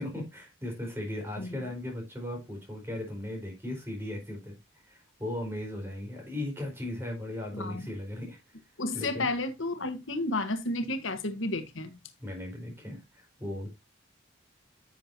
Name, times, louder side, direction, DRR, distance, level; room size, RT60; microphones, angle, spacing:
voice 1, 0.0-4.6 4.8-8.4 8.9-9.3 12.2-13.7, left 1 dB, 10° right, 4.4 m, -37 dB
voice 2, 8.8-11.9, left 2 dB, 80° left, 1.3 m, -31 dB
11.0 x 7.5 x 2.8 m
head